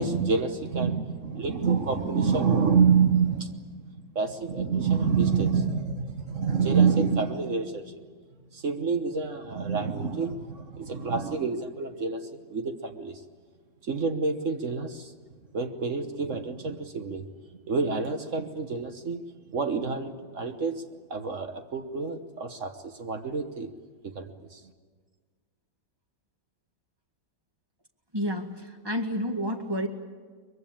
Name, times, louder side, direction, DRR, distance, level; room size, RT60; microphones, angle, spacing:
voice 1, 0.0-8.1 8.5-13.2 13.8-15.1 15.5-17.3 17.7-19.2 19.5-20.8 21.1-23.7 24.0-24.7, right 5 dB, 45° right, 7 dB, 1.4 m, -27 dB
voice 2, 28.1-29.9, equal, 15° right, 4 dB, 1.8 m, -30 dB
23.0 x 22.5 x 8.9 m, 1.5 s
omnidirectional pair, 2.1 m